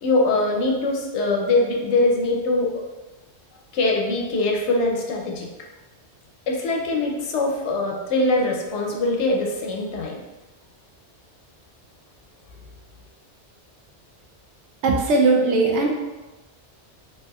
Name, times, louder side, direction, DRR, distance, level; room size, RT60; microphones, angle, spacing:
voice 1, 0.0-2.7 3.7-5.5 6.5-10.2, left 2 dB, 85° left, -1 dB, 0.9 m, -22 dB
voice 2, 14.8-15.9, right 3 dB, 85° right, 0 dB, 0.9 m, -18 dB
3.3 x 2.7 x 2.2 m, 1.1 s
omnidirectional pair, 1.2 m